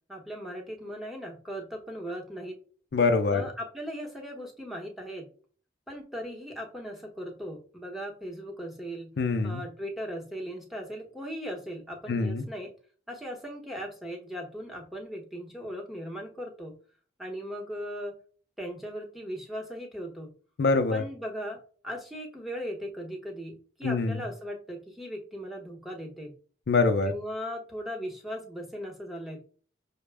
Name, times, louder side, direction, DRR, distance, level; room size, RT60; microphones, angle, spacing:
voice 1, 0.1-2.5 3.3-5.3 5.9-9.1 9.4-12.7 13.1-16.7 17.2-18.1 18.6-20.3 20.9-21.6 21.8-26.3 27.0-29.4, equal, ahead, 0 dB, 0.8 m, -38 dB
voice 2, 2.9-3.4 9.2-9.6 12.1-12.4 20.6-21.0 23.8-24.2 26.7-27.1, left 3 dB, 60° left, 8 dB, 0.4 m, -24 dB
5.6 x 2.0 x 3.4 m, 0.41 s
head